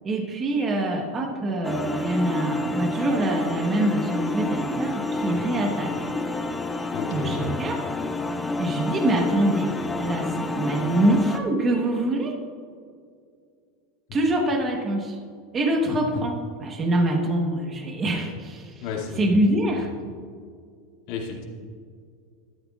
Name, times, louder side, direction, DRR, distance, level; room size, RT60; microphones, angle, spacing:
voice 1, 0.0-5.9 7.1-7.8 8.6-12.4 14.1-15.2 15.5-18.8 19.2-19.9, right 1 dB, 20° right, 2 dB, 1.1 m, -24 dB
sound 1, 1.6-11.4, left 2 dB, 10° left, 0.4 m, -29 dB
voice 2, 6.9-7.6 18.8-19.3 21.1-21.4, left 5 dB, 50° left, -2 dB, 2.3 m, -32 dB
14.0 x 12.5 x 2.4 m, 2.2 s
supercardioid pair, 175°, 0 cm